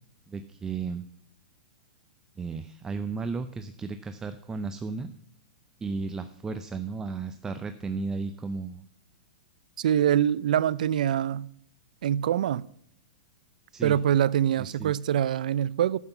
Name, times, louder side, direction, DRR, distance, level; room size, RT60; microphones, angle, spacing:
voice 1, 0.3-1.0 2.4-5.1 5.8-8.8 13.7-14.0 14.6-14.9, right 4 dB, 15° right, 0.5 m, -34 dB
voice 2, 9.8-11.5 12.0-12.6 13.8-16.0, right 10 dB, 75° right, 0.5 m, -24 dB
11.0 x 7.9 x 5.5 m
hypercardioid pair, 140°, 4 cm